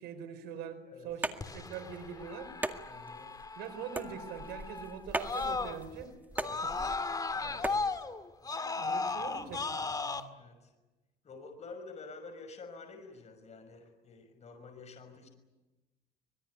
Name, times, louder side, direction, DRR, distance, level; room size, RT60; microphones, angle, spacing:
voice 1, 0.0-2.5 3.6-6.1 7.3-7.6 8.8-10.3, right 7 dB, 85° right, 9 dB, 4.4 m, -43 dB
sound 1, 1.1-7.9, right 2 dB, 10° right, 2.0 m, -40 dB
Screaming, 1.4-6.0 6.4-10.2, left 4 dB, 20° left, 2.1 m, -36 dB
voice 2, 2.9-3.3 6.4-6.7 7.3-8.0 9.1-9.6 10.3-10.7 11.2-15.3, left 3 dB, 40° left, 6 dB, 6.0 m, -49 dB
25.0 x 21.5 x 9.8 m, 1.1 s
cardioid pair, 110°, 17 cm